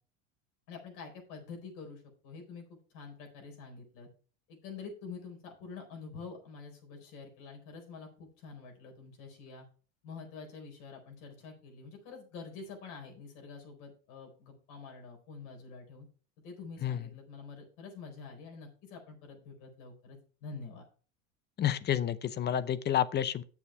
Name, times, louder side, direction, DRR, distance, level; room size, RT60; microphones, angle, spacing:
voice 1, 0.7-4.1 4.5-9.7 10.0-16.1 16.4-20.9, left 4 dB, 60° left, 4.4 m, -47 dB
voice 2, 21.6-23.4, left 10 dB, 25° left, 0.7 m, -29 dB
8.3 x 7.2 x 4.5 m
hypercardioid pair, 95°, 39 cm